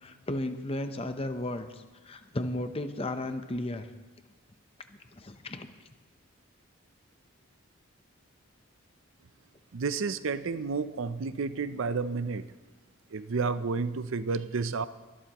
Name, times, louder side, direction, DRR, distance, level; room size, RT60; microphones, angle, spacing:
voice 1, 0.0-3.9 5.1-5.7, left 1 dB, 25° left, 8 dB, 0.7 m, -34 dB
voice 2, 9.7-12.5 13.1-14.9, right 4 dB, 65° right, 13 dB, 0.5 m, -31 dB
23.5 x 12.5 x 3.0 m, 1.3 s
head